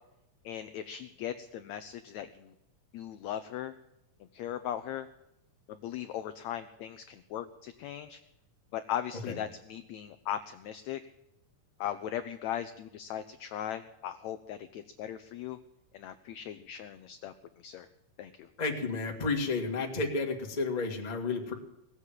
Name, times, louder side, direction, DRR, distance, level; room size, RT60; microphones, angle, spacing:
voice 1, 0.4-2.5 2.9-3.7 4.3-5.1 5.7-8.2 8.7-11.0 11.8-15.6 15.9-17.9 18.2-18.5, left 10 dB, 80° left, 10 dB, 1.6 m, -38 dB
voice 2, 18.6-21.5, left 3 dB, 20° left, 2 dB, 1.3 m, -31 dB
18.0 x 8.2 x 7.5 m, 0.89 s
omnidirectional pair, 3.9 m